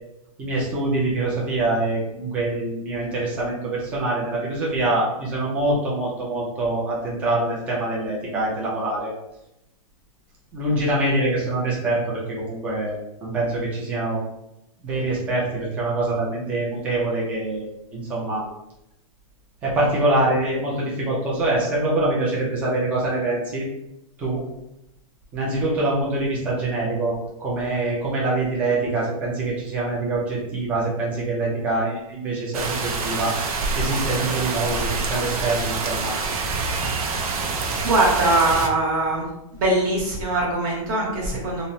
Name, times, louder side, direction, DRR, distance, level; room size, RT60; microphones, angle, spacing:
voice 1, 0.4-9.1 10.5-14.2 14.8-18.5 19.6-23.6 24.2-24.4 25.3-33.4 33.8-36.1, right 2 dB, 10° right, -5 dB, 0.3 m, -24 dB
sound 1, 32.5-38.7, right 4 dB, 90° right, 0.5 m, -26 dB
voice 2, 37.8-39.2 39.5-41.7, right 2 dB, 35° right, -3 dB, 0.9 m, -21 dB
2.9 x 2.0 x 2.5 m, 0.86 s
supercardioid pair, 170°, 18 cm